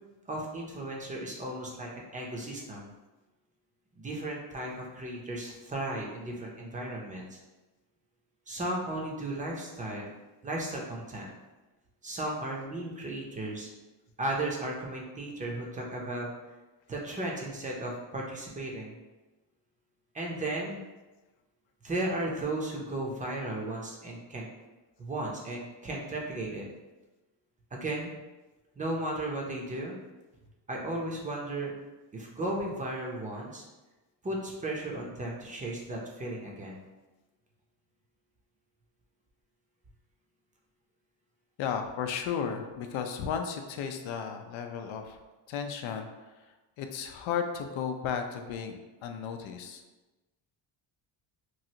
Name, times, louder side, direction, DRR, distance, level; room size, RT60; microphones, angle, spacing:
voice 1, 0.3-2.9 3.9-7.4 8.5-10.1 10.4-11.3 12.0-13.7 14.2-16.3 16.9-19.0 20.1-20.8 21.8-24.5 25.0-26.7 27.7-28.1 28.8-30.0 30.7-31.7 32.1-33.6 34.2-36.8, right 1 dB, 15° right, -2 dB, 0.6 m, -35 dB
voice 2, 41.6-45.2 45.5-46.1 46.8-49.8, left 7 dB, 75° left, 5 dB, 0.5 m, -34 dB
3.1 x 2.5 x 2.8 m, 1.1 s
cardioid pair, 120°, 46 cm